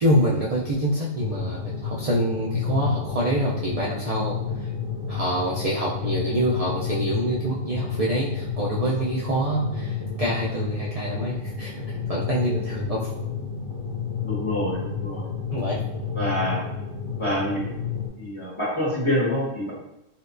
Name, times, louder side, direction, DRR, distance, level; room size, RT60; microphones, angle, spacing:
voice 1, 0.0-4.3 5.1-11.7 12.1-13.1 15.5-15.8, right 1 dB, 75° right, -6 dB, 0.3 m, -26 dB
sound 1, 1.2-18.1, left 6 dB, 20° right, 1.0 m, -30 dB
voice 2, 14.2-15.3 16.1-16.6 17.2-17.6 18.2-19.7, equal, 25° left, -7 dB, 1.1 m, -26 dB
4.3 x 2.1 x 2.5 m, 0.89 s
omnidirectional pair, 1.3 m